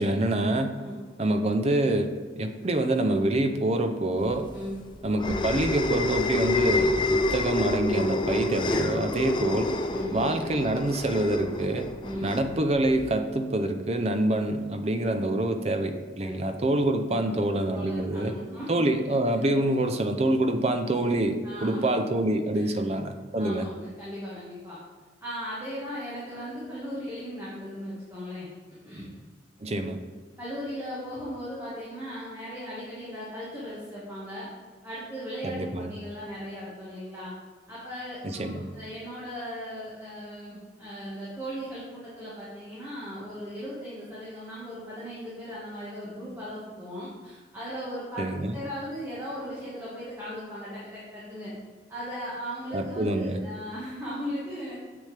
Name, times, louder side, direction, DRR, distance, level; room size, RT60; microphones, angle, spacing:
voice 1, 0.0-0.8 1.2-4.5 5.0-9.7 10.1-11.9 12.2-18.3 18.7-23.7 29.6-30.0 35.4-36.0 38.2-38.7 48.2-48.5 52.7-53.4, right 1 dB, 35° right, 7 dB, 0.5 m, -26 dB
sound 1, 4.3-13.1, left 2 dB, 25° left, 0.4 m, -28 dB
voice 2, 4.5-4.8 9.9-10.2 12.0-12.4 16.2-16.3 17.1-18.9 19.4-19.5 21.4-21.8 22.5-22.7 23.4-24.8 25.2-28.5 28.8-29.1 30.4-34.5 34.8-37.3 37.7-51.5 51.9-54.7, equal, 15° right, -9 dB, 1.6 m, -37 dB
7.0 x 6.3 x 3.3 m, 1.5 s
head